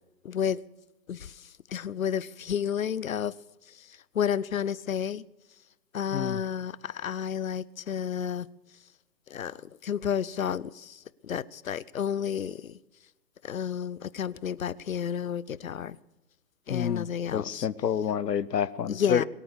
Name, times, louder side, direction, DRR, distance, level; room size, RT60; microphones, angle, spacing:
voice 1, 0.2-0.6 1.1-1.3 1.7-3.3 4.1-5.2 5.9-8.5 9.3-12.8 13.4-16.0 16.7-17.7 18.9-19.2, left 8 dB, 55° left, 0.6 m, -31 dB
voice 2, 6.1-6.4 16.7-19.3, left 8 dB, 75° left, 1.0 m, -28 dB
22.5 x 8.6 x 6.8 m
hypercardioid pair, 160°, 50 cm